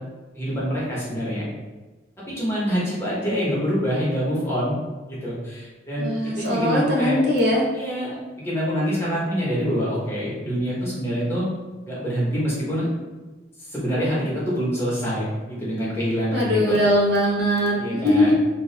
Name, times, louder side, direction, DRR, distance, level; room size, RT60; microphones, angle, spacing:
voice 1, 0.3-1.5 2.3-4.8 5.1-6.1 6.4-7.2 7.7-11.5 11.8-12.9 13.7-16.8 17.8-18.3, equal, 15° left, -8 dB, 0.9 m, -25 dB
voice 2, 6.0-7.6 16.3-18.3, left 1 dB, 65° right, -3 dB, 0.7 m, -21 dB
2.7 x 2.3 x 3.2 m, 1.2 s
head